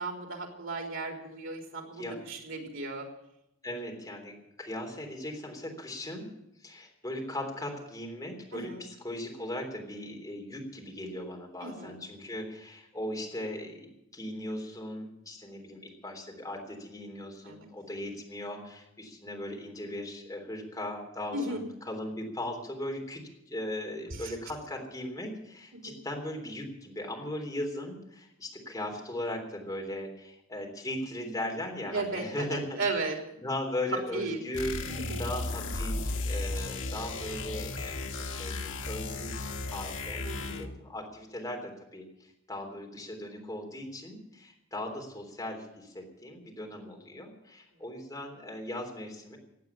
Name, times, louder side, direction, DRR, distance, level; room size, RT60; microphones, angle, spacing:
voice 1, 0.0-3.1 8.5-8.8 11.6-11.9 17.4-17.6 21.3-21.6 24.1-24.3 25.7-26.0 31.9-33.2 34.1-34.4 34.9-35.3 40.2-40.8, right 3 dB, 85° right, 3 dB, 3.4 m, -35 dB
voice 2, 3.6-6.3 6.6-23.2 23.5-32.8 33.4-34.8 35.2-49.4, left 1 dB, 15° left, 1 dB, 3.5 m, -38 dB
sound 1, 34.5-40.8, left 2 dB, 70° left, 1.3 m, -35 dB
16.0 x 8.8 x 9.5 m, 0.83 s
head